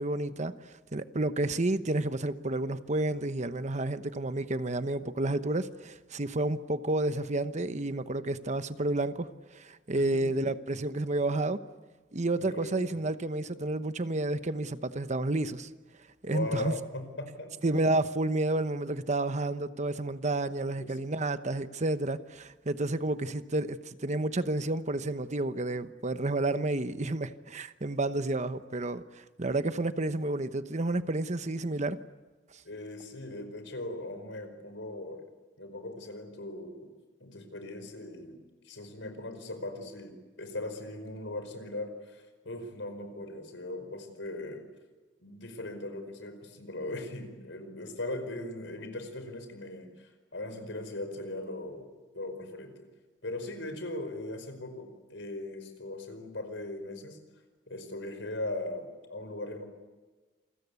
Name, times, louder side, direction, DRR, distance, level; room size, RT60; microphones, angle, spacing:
voice 1, 0.0-11.6 12.1-15.7 16.2-16.7 17.6-32.0, right 2 dB, 40° right, 1.0 m, -30 dB
voice 2, 9.9-10.4 12.4-13.0 16.3-17.6 20.8-21.1 32.7-35.2 35.6-36.9 37.2-44.7 45.2-51.9 52.1-52.9 53.2-57.2 57.7-59.6, left 2 dB, 85° left, 5.1 m, -39 dB
28.0 x 22.5 x 8.3 m
head